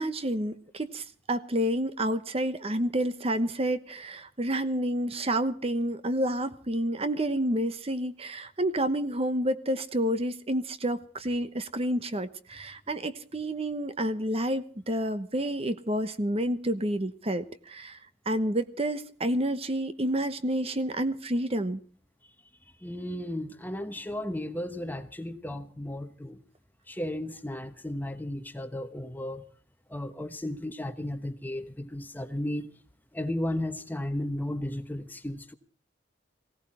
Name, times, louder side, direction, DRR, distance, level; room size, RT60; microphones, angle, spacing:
voice 1, 0.0-18.0 18.3-21.8, right 1 dB, 30° right, 12 dB, 1.0 m, -29 dB
voice 2, 22.8-26.4 26.9-29.5 29.9-32.7 33.1-35.5, left 1 dB, 10° left, 9 dB, 1.1 m, -34 dB
19.0 x 17.0 x 4.3 m, 0.43 s
head